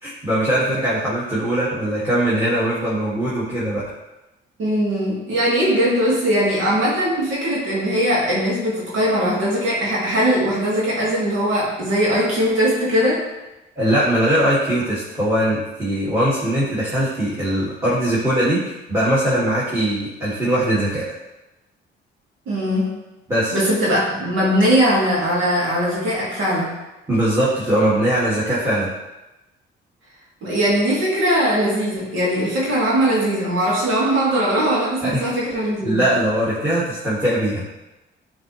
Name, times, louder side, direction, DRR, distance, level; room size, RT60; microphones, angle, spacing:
voice 1, 0.0-3.9 13.8-21.1 23.3-23.6 27.1-28.9 35.0-35.2 35.8-37.6, right 1 dB, 15° right, -9 dB, 2.1 m, -21 dB
voice 2, 4.6-13.2 22.5-22.9 23.5-26.7 30.4-36.0, equal, 80° right, -5 dB, 2.3 m, -20 dB
9.1 x 3.9 x 3.2 m, 1.0 s
cardioid pair, 90°, 20 cm